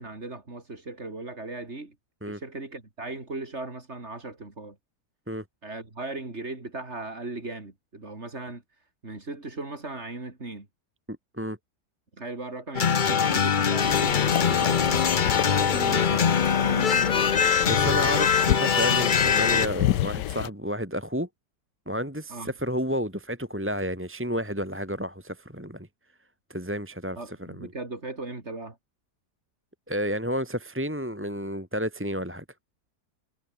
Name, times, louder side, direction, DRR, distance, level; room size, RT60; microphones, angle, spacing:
voice 1, 0.0-1.9 2.3-4.8 5.6-8.6 9.0-10.7 12.2-14.9 15.5-16.3 16.6-17.4 22.3-22.5 27.2-28.8, right 2 dB, 40° right, 4.0 m, -37 dB
voice 2, 11.1-11.6 17.7-21.3 21.9-25.9 26.5-27.7 29.9-32.4, equal, 5° right, 3.0 m, -31 dB
sound 1, 12.7-19.7, left 6 dB, 40° left, 0.7 m, -22 dB
sound 2, 13.8-20.5, left 14 dB, 90° left, 1.3 m, -30 dB
omnidirectional pair, 1.8 m